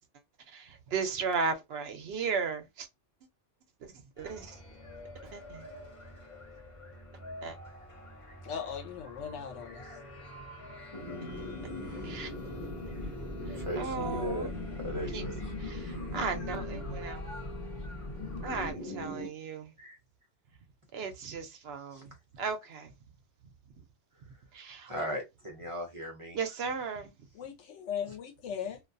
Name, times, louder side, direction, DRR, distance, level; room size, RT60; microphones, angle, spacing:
voice 1, 0.5-2.9 3.8-4.5 5.3-5.6 7.4-7.6 12.0-12.3 13.8-14.5 15.1-15.2 15.6-17.2 18.4-19.7 20.9-22.1 22.4-22.9 24.5-24.9 26.3-27.1, right 5 dB, 65° right, 0.8 m, -35 dB
sound 1, 4.2-18.7, left 1 dB, 35° left, 0.7 m, -43 dB
voice 2, 8.4-9.9 27.3-28.8, left 7 dB, 80° left, 1.0 m, -38 dB
sound 2, 10.9-19.3, left 1 dB, 65° left, 1.1 m, -41 dB
voice 3, 13.3-15.5 19.8-20.0 21.9-22.0 24.9-26.4, equal, 35° right, 0.6 m, -38 dB
2.4 x 2.3 x 2.5 m
omnidirectional pair, 1.2 m